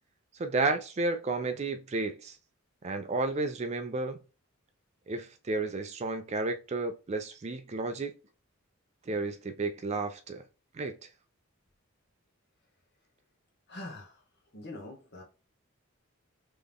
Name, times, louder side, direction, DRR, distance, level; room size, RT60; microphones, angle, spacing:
voice 1, 0.3-2.4 2.8-4.2 5.1-8.1 9.1-10.4 10.7-10.9, right 3 dB, 30° right, 0.4 m, -32 dB
voice 2, 13.7-14.2 14.5-15.2, left 2 dB, 50° left, 1.4 m, -43 dB
3.7 x 3.4 x 3.5 m
head